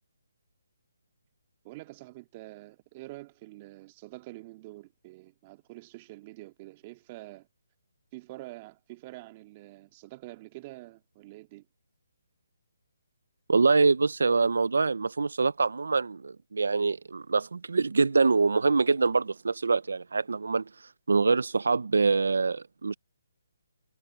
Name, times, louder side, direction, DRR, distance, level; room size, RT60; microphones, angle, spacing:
voice 1, 1.6-7.5 8.1-11.7, right 19 dB, 30° right, 2.3 m, -46 dB
voice 2, 13.5-22.9, right 4 dB, 80° right, 0.7 m, -25 dB
hypercardioid pair, 155°, 0 cm